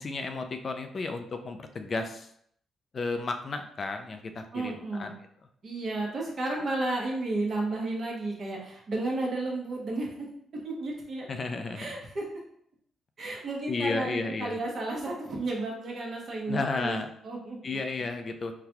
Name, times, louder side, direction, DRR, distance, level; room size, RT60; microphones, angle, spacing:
voice 1, 0.0-2.3 2.9-5.2 11.3-11.9 13.7-14.6 16.5-17.1 17.6-18.5, left 3 dB, 50° left, 6 dB, 0.4 m, -33 dB
voice 2, 4.5-5.1 5.6-10.3 10.6-11.3 11.7-12.3 13.2-17.0 17.2-17.8, right 2 dB, 55° right, -1 dB, 1.0 m, -32 dB
3.9 x 2.2 x 2.9 m, 0.68 s
supercardioid pair, 55°, 0 cm